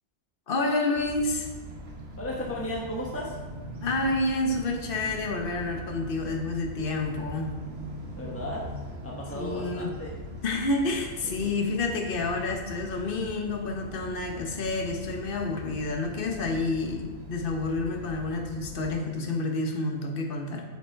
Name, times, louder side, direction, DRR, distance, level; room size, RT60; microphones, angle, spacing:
voice 1, 0.5-1.5 3.8-7.5 9.3-9.9 10.4-20.6, left 2 dB, 50° left, 2 dB, 1.2 m, -29 dB
sound 1, 1.0-18.9, right 1 dB, 60° right, 1.6 m, -41 dB
voice 2, 2.2-3.4 8.2-8.7 9.0-10.2 11.2-11.5, left 1 dB, 10° left, -3 dB, 1.2 m, -35 dB
8.6 x 6.6 x 4.6 m, 1.5 s
omnidirectional pair, 1.2 m